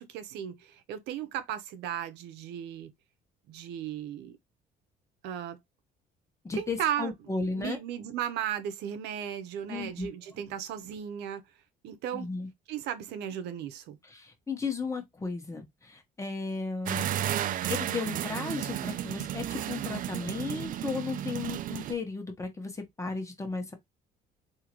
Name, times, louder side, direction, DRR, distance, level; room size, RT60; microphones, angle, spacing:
voice 1, 0.0-2.9 3.5-4.4 5.2-5.6 6.6-7.1 7.5-11.4 11.8-12.3 12.7-14.0, right 10 dB, 85° right, 0.8 m, -35 dB
voice 2, 6.4-7.8 9.7-10.3 12.1-12.5 14.0-17.1 17.7-23.7, left 4 dB, 15° left, 1.3 m, -35 dB
sound 1, 16.9-21.9, right 11 dB, 55° right, 0.4 m, -33 dB
3.7 x 2.8 x 3.0 m
cardioid pair, 110°, 17 cm